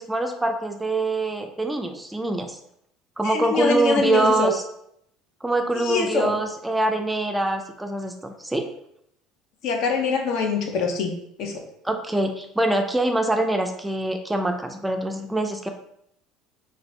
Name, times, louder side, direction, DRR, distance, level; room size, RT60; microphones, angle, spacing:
voice 1, 0.0-2.6 3.2-4.6 5.4-8.7 11.8-15.7, right 2 dB, 10° right, 4 dB, 0.3 m, -24 dB
voice 2, 3.2-4.5 5.7-6.4 9.6-11.1 11.4-11.6, left 4 dB, 65° left, 3 dB, 0.6 m, -24 dB
2.6 x 2.5 x 3.1 m, 0.74 s
supercardioid pair, 100°, 0 cm